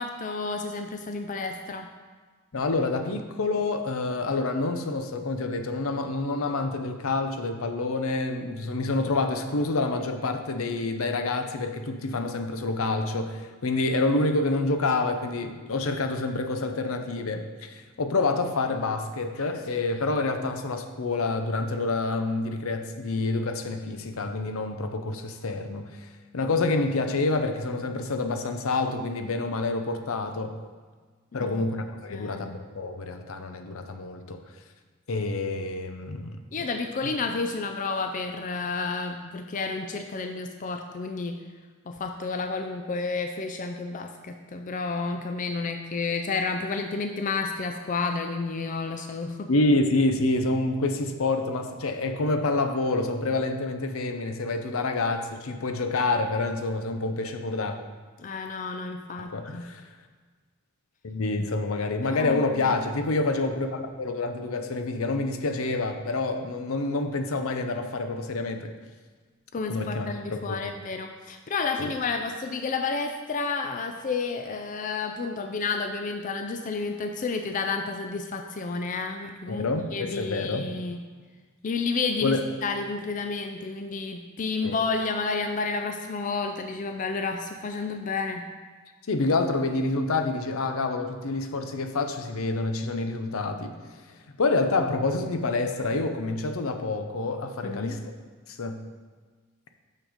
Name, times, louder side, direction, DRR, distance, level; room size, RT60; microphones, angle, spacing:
voice 1, 0.0-1.9 31.3-31.6 32.1-32.5 36.5-41.4 41.9-49.5 58.2-59.6 62.0-62.8 69.5-81.0 81.6-88.4 97.6-98.0, left 4 dB, 40° left, 5 dB, 0.4 m, -31 dB
voice 2, 2.5-26.1 26.3-30.6 31.3-34.4 35.1-36.4 49.5-57.8 59.2-59.8 61.0-68.7 69.7-70.7 71.8-71.9 79.5-80.7 82.2-82.4 84.6-84.8 89.1-93.8 94.4-98.1 98.5-98.8, left 3 dB, 75° left, 7 dB, 0.7 m, -27 dB
6.5 x 6.1 x 5.0 m, 1.4 s
head